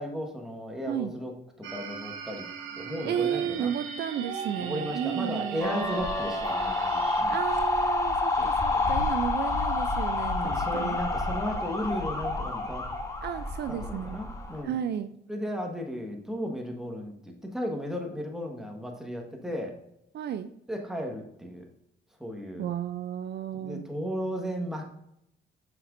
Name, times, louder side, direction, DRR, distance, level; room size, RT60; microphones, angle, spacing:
voice 1, 0.0-1.3 1.6-2.4 2.8-3.7 4.6-7.4 8.4-9.1 10.3-12.8 13.7-14.8 15.3-19.7 20.7-21.6 22.2-22.7 23.5-25.0, equal, ahead, 1 dB, 1.4 m, -35 dB
sound 1, 1.6-7.2, right 6 dB, 90° right, 0.8 m, -38 dB
voice 2, 3.0-6.1 7.3-11.0 13.2-14.2 14.6-15.1 20.1-20.5 22.6-23.8, right 9 dB, 60° right, 11 dB, 0.4 m, -33 dB
sound 2, 5.6-14.6, left 2 dB, 15° left, 1.2 m, -29 dB
7.7 x 6.0 x 2.6 m, 0.78 s
cardioid pair, 90°, 20 cm